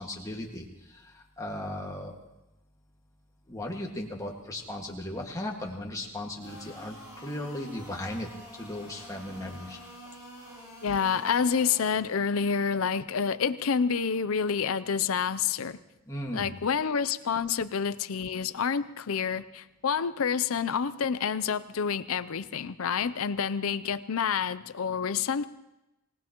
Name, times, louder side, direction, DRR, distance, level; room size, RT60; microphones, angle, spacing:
voice 1, 0.0-2.2 3.5-8.3 8.6-9.8 16.1-16.5, left 1 dB, 15° left, 0 dB, 1.8 m, -37 dB
sound 1, 6.4-11.9, equal, 15° right, 5.9 m, -47 dB
voice 2, 10.8-15.8 16.3-25.4, left 6 dB, 70° left, 14 dB, 0.5 m, -28 dB
26.5 x 18.0 x 3.0 m, 0.94 s
head